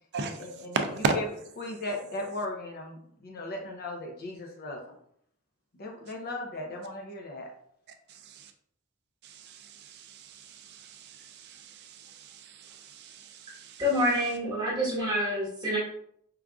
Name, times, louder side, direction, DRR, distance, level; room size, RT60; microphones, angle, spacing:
voice 1, 0.2-1.3 1.6-5.0 5.8-7.5, left 2 dB, 45° left, 1 dB, 0.5 m, -37 dB
voice 2, 0.7-1.1 8.3-8.5 9.2-13.8, right 4 dB, 50° right, 6 dB, 0.4 m, -35 dB
voice 3, 13.8-15.8, equal, 20° right, -7 dB, 1.3 m, -27 dB
4.5 x 2.4 x 2.3 m, 0.69 s
head